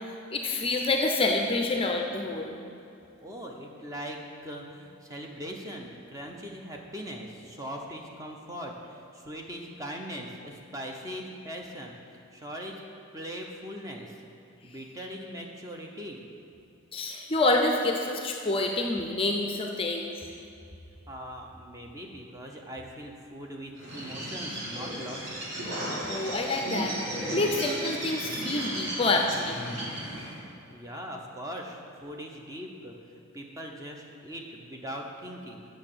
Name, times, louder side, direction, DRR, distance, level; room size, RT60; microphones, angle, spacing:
voice 1, 0.3-2.6 16.9-20.1 26.1-27.0 27.3-29.6, left 2 dB, 25° left, 2 dB, 0.5 m, -27 dB
voice 2, 3.2-12.8 13.1-14.1 14.6-16.3 19.9-20.0 20.3-20.5 20.8-25.4 30.7-35.7, equal, 15° right, 1 dB, 0.7 m, -41 dB
Bird, 23.8-30.4, right 1 dB, 55° right, 2.4 m, -35 dB
8.0 x 6.3 x 6.8 m, 2.6 s
head